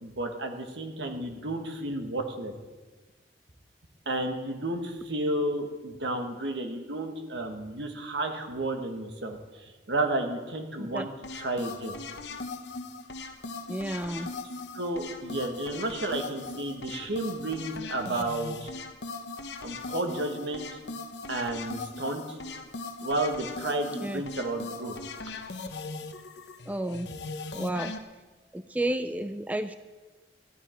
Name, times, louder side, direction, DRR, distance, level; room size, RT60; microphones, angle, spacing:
voice 1, 0.0-2.5 4.0-12.0 14.7-18.7 19.6-20.7 21.3-22.4 23.0-25.0, right 2 dB, 80° right, 4 dB, 1.5 m, -32 dB
sound 1, 11.2-28.0, left 3 dB, 75° left, 1.0 m, -39 dB
voice 2, 13.7-14.3 24.0-24.2 26.7-27.1 27.5-27.9 28.5-29.7, right 1 dB, 10° right, 10 dB, 0.4 m, -31 dB
14.5 x 11.0 x 4.5 m, 1.3 s
head